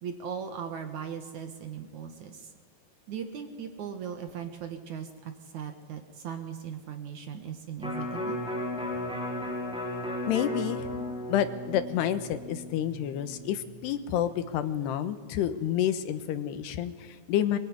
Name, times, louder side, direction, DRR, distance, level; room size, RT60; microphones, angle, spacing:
voice 1, 0.0-2.5 3.1-8.4, right 7 dB, 55° right, 7 dB, 2.4 m, -38 dB
Electric guitar, 7.8-14.0 14.4-14.5, left 1 dB, ahead, 4.6 m, -35 dB
voice 2, 10.3-10.9 11.3-17.6, left 10 dB, 85° left, 11 dB, 3.3 m, -29 dB
23.0 x 22.5 x 9.8 m, 1.5 s
omnidirectional pair, 4.7 m